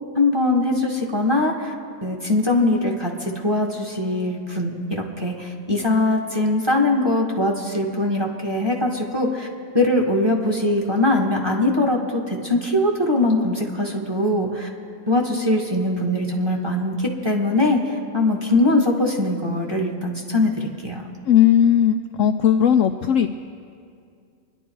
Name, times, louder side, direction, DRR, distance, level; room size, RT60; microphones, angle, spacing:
voice 1, 0.1-1.7 2.0-9.5 9.7-14.7 15.1-21.0, left 2 dB, 15° right, 0 dB, 1.5 m, -21 dB
voice 2, 21.3-23.3, left 9 dB, 70° left, 6 dB, 0.8 m, -17 dB
25.5 x 11.0 x 4.6 m, 2.3 s
omnidirectional pair, 1.6 m